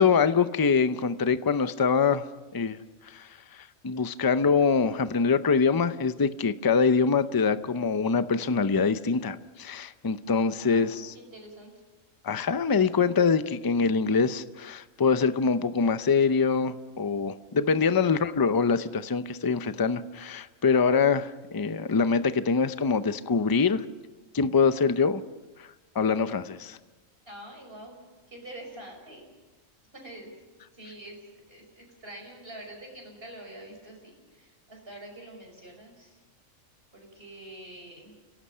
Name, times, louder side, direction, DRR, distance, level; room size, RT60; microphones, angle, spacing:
voice 1, 0.0-2.2 2.5-2.8 3.1-11.1 12.2-23.8 24.3-25.2 25.9-26.8, left 5 dB, 25° left, 12 dB, 0.5 m, -24 dB
voice 2, 10.6-11.7 17.9-18.1 27.3-28.0 28.3-29.2 29.9-30.3 30.7-31.2 31.5-36.2 36.9-38.2, right 1 dB, 45° right, 1 dB, 5.9 m, -45 dB
30.0 x 17.5 x 5.7 m, 1.2 s
omnidirectional pair, 1.4 m